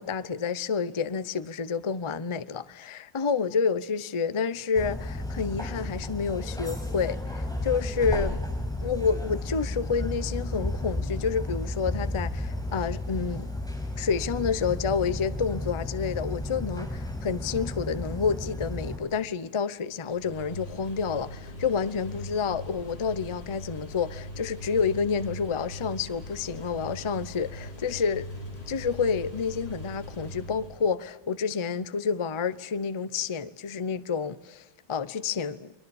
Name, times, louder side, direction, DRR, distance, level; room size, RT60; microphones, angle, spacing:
voice 1, 0.0-8.4 8.8-13.5 14.0-28.3 28.7-35.7, left 6 dB, 40° left, 0.4 m, -29 dB
sound 1, 4.7-19.0, left 1 dB, ahead, 5.3 m, -33 dB
sound 2, 20.1-30.9, left 1 dB, 75° left, 5.1 m, -41 dB
30.0 x 23.0 x 7.2 m
omnidirectional pair, 1.9 m